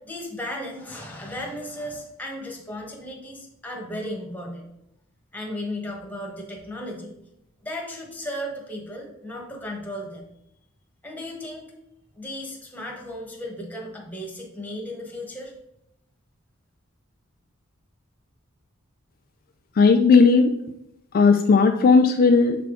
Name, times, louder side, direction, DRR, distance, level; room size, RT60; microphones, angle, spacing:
voice 1, 0.0-4.6 5.3-7.1 7.6-10.2 11.0-11.7 12.2-15.5, left 1 dB, 10° left, 0 dB, 1.1 m, -35 dB
voice 2, 19.8-20.5 21.1-22.6, left 4 dB, 45° left, 5 dB, 0.3 m, -16 dB
7.5 x 3.4 x 3.7 m, 0.81 s
head